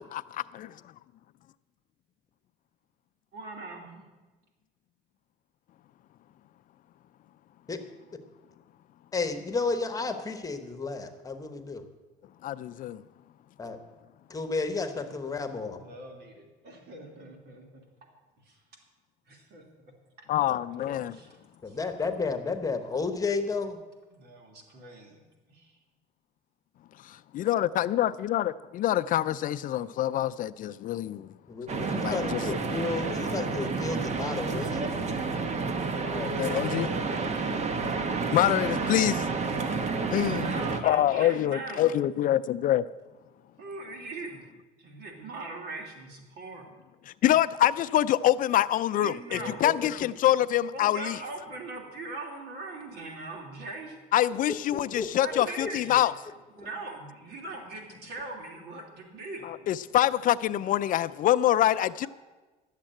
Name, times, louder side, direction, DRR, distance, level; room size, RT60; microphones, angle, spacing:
voice 1, 0.1-0.7 12.4-13.0 20.3-21.2 27.0-31.3 32.0-32.5 36.4-36.9 38.3-39.3 40.1-40.5 40.8-42.8 47.2-51.2 54.1-56.1 59.4-62.1, left 12 dB, 55° left, 14 dB, 0.4 m, -25 dB
voice 2, 3.3-4.0 14.9-15.1 15.6-17.8 18.4-18.6 19.3-19.6 21.1-21.4 21.7-21.8 24.1-25.2 25.5-25.7 40.4-41.9 43.6-44.4 44.8-46.6 49.0-50.1 50.7-54.0 55.2-56.1 56.6-59.4, right 2 dB, 70° right, 2 dB, 2.9 m, -41 dB
voice 3, 9.1-11.8 13.6-13.8 14.3-15.8 20.4-20.9 21.6-23.8 31.5-34.9 36.0-36.3 49.3-49.7 55.0-55.1 55.3-55.7, left 4 dB, 20° left, 7 dB, 1.2 m, -32 dB
sound 1, 31.7-40.8, right 4 dB, 40° right, 1.1 m, -30 dB
11.5 x 7.4 x 8.9 m, 1.2 s
cardioid pair, 115°, 17 cm